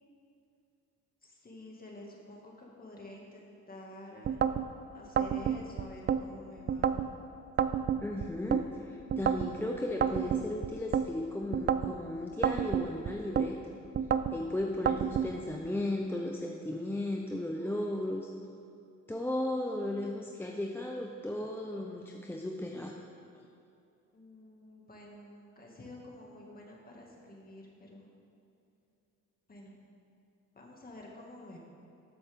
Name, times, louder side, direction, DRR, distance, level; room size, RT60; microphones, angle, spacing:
voice 1, 1.2-4.7 4.9-7.0 24.1-28.1 29.5-29.7 30.5-31.6, left 1 dB, 30° left, -1 dB, 2.1 m, -50 dB
sound 1, 4.2-4.7 5.2-6.2 6.7-7.1 7.6-8.6 9.1-9.5 10.0-11.1 11.5-11.9 12.4-13.5 13.9-14.4 14.9-15.3, right 8 dB, 35° right, 0.4 m, -29 dB
voice 2, 8.0-13.6 14.3-18.3 19.1-23.0 23.4-23.5, left 1 dB, 5° left, 0 dB, 0.7 m, -35 dB
13.0 x 7.7 x 3.6 m, 2.6 s
cardioid pair, 90°, 30 cm